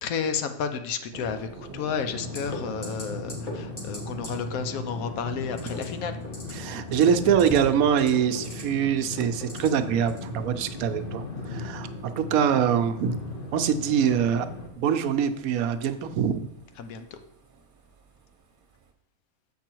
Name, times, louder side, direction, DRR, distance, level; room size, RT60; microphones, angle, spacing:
voice 1, 0.0-6.2 16.8-17.2, left 6 dB, 75° left, 8 dB, 1.1 m, -32 dB
Thunder, 1.1-18.9, right 4 dB, 40° right, 1.0 m, -47 dB
sound 1, 2.0-14.7, left 3 dB, 45° left, 0.9 m, -38 dB
sound 2, 2.3-2.6 2.8-3.0 3.3-3.5 3.8-4.0 4.2-4.3 5.5-5.8 6.2-6.5 6.9-7.6 7.9-8.6 9.0-9.7 10.1-10.2, left 3 dB, 60° left, 2.5 m, -39 dB
voice 2, 6.5-13.2 13.5-14.5 14.8-16.5, right 8 dB, 75° right, 9 dB, 1.0 m, -24 dB
7.5 x 5.4 x 4.5 m, 0.78 s
omnidirectional pair, 1.5 m